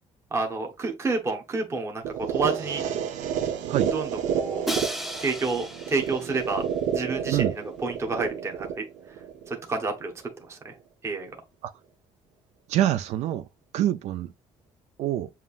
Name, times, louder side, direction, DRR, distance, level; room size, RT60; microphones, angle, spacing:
voice 1, 0.3-2.8 3.9-4.1 4.3-4.6 5.2-6.6 6.9-8.8 9.5-10.1 10.5-10.7 11.0-11.3, right 3 dB, 20° right, 1.0 m, -29 dB
sound 1, 2.0-10.0, right 8 dB, 85° right, 0.8 m, -30 dB
Crash cymbal, 4.7-6.7, right 1 dB, ahead, 0.6 m, -34 dB
voice 2, 12.7-13.4 13.7-14.3 15.0-15.3, right 13 dB, 65° right, 0.4 m, -25 dB
7.3 x 2.7 x 2.4 m
cardioid pair, 165°, 12 cm